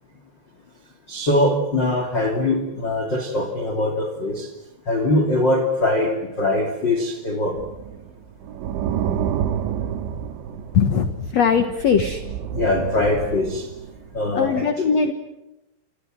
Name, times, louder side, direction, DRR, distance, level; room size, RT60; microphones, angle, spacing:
voice 1, 1.1-4.5 4.8-7.6 12.5-13.7 14.1-14.8, left 1 dB, 30° left, 5 dB, 2.6 m, -22 dB
sound 1, 7.6-11.3 11.7-14.3, right 9 dB, 90° right, 3.7 m, -29 dB
voice 2, 10.7-12.3 14.3-15.1, left 6 dB, 75° left, 9 dB, 1.5 m, -20 dB
27.5 x 27.5 x 7.7 m, 0.93 s
omnidirectional pair, 5.3 m